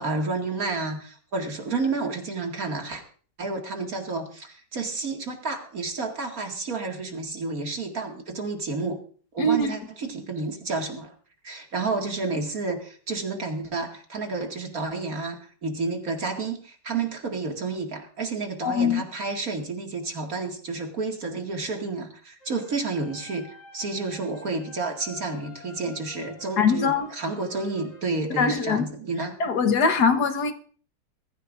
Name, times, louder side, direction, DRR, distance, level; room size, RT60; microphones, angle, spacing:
voice 1, 0.0-3.0 3.4-9.0 9.3-11.1 11.4-29.3, right 3 dB, 50° right, 2 dB, 2.5 m, -30 dB
voice 2, 9.4-9.7 18.6-19.0 26.6-27.1 28.4-28.9 29.4-30.5, left 4 dB, 60° left, 8 dB, 1.8 m, -22 dB
sound 1, 22.4-28.1, left 2 dB, 85° left, 4.6 m, -49 dB
21.5 x 14.5 x 2.6 m, 0.43 s
omnidirectional pair, 2.0 m